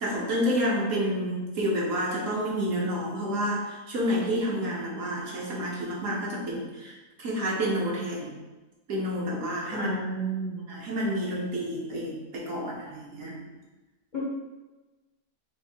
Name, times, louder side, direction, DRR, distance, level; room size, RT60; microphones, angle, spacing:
voice 1, 0.0-8.3 8.9-9.9 10.7-13.5, equal, 60° right, -4 dB, 1.2 m, -29 dB
voice 2, 9.7-10.7 14.1-14.2, right 2 dB, 50° left, -7 dB, 0.6 m, -31 dB
4.0 x 2.4 x 4.3 m, 1.1 s
omnidirectional pair, 1.7 m